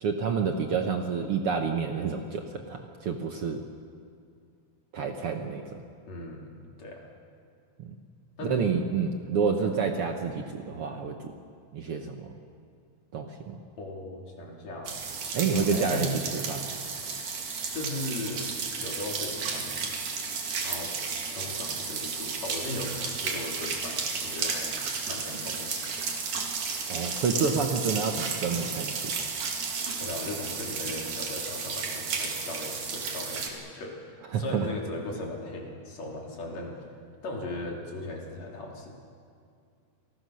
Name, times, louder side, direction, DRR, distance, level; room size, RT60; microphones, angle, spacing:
voice 1, 0.0-3.6 4.9-5.8 7.8-8.0 8.4-11.3 11.7-12.3 13.1-13.6 15.3-16.8 26.9-29.3 34.3-34.7, right 5 dB, 60° right, 4 dB, 1.7 m, -29 dB
voice 2, 6.0-7.1 8.4-8.8 9.6-9.7 13.8-15.0 15.5-16.2 17.7-18.5 18.8-20.0 20.6-21.0 21.3-25.7 30.0-36.9 37.2-38.9, left 2 dB, 60° left, -1 dB, 4.2 m, -38 dB
sound 1, 14.9-33.5, right 5 dB, 80° right, 3.8 m, -33 dB
29.0 x 19.5 x 6.4 m, 2.3 s
omnidirectional pair, 3.5 m